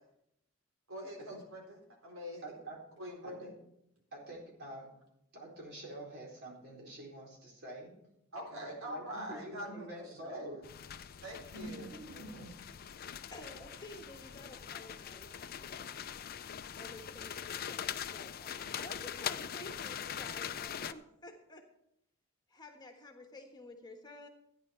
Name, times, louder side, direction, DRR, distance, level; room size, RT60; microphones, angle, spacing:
voice 1, 0.9-2.4 3.0-3.5 8.3-10.5 11.2-11.9, equal, 70° right, 0 dB, 3.6 m, -44 dB
voice 2, 2.4-2.8 3.2-3.5 4.1-4.9 5.3-7.9 8.5-10.6 11.5-12.5, right 1 dB, 55° right, -2 dB, 4.2 m, -46 dB
sound 1, 10.6-20.9, left 8 dB, 45° left, 0.5 m, -42 dB
voice 3, 13.3-16.1 16.8-21.7 22.5-24.3, left 1 dB, 20° left, 4 dB, 1.4 m, -52 dB
13.5 x 10.0 x 4.4 m, 0.78 s
head